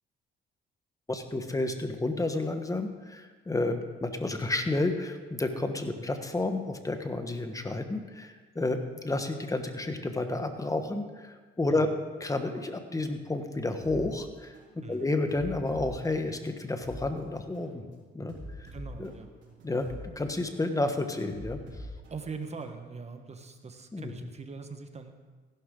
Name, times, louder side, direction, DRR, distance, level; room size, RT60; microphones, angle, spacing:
voice 1, 1.1-11.9 12.2-14.5 14.9-17.8 18.1-18.7 19.0-19.1 19.6-21.6 23.9-24.1, left 2 dB, 15° left, 7 dB, 1.3 m, -31 dB
sound 1, 13.8-14.0 14.5-14.7 15.3-17.0 17.5-17.7 18.3-20.0 20.5-20.7 21.3-22.8, right 1 dB, 70° right, 4.2 m, -45 dB
voice 2, 18.7-19.3 22.1-25.1, right 4 dB, 35° right, 7 dB, 1.3 m, -42 dB
15.5 x 11.5 x 3.9 m, 1.4 s
cardioid pair, 90°, 20 cm